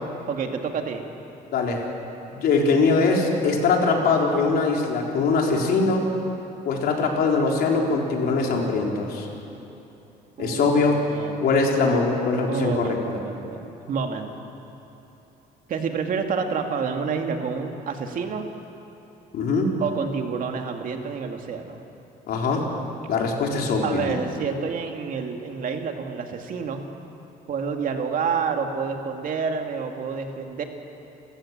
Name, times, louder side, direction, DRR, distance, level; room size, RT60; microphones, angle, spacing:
voice 1, 0.3-1.0 10.4-12.0 12.5-14.3 15.7-18.5 19.8-21.8 23.8-26.8 27.5-30.6, right 5 dB, 55° right, 4 dB, 2.4 m, -29 dB
voice 2, 1.5-1.8 2.3-6.1 6.7-9.3 10.4-11.0 11.4-13.2 19.3-19.7 22.3-22.6 23.1-24.2, left 4 dB, 65° left, 0 dB, 4.0 m, -22 dB
30.0 x 15.5 x 7.6 m, 3.0 s
cardioid pair, 110°, 17 cm